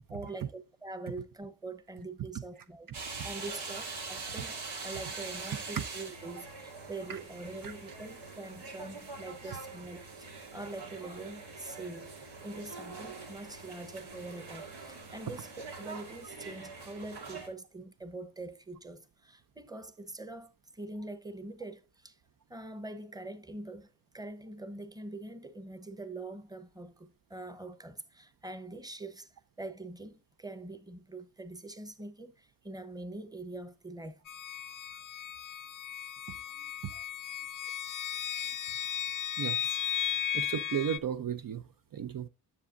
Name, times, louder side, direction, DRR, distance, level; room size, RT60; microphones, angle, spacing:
voice 1, 0.1-22.2 22.5-29.3 29.6-34.2, right 2 dB, 10° right, 0.9 m, -44 dB
sound 1, 2.9-17.5, right 4 dB, 90° right, 1.9 m, -43 dB
sound 2, 34.3-41.0, left 10 dB, 55° left, 0.5 m, -35 dB
voice 2, 40.3-41.6 41.9-42.3, right 9 dB, 60° right, 0.6 m, -34 dB
9.7 x 7.1 x 2.5 m
cardioid pair, 85°, 39 cm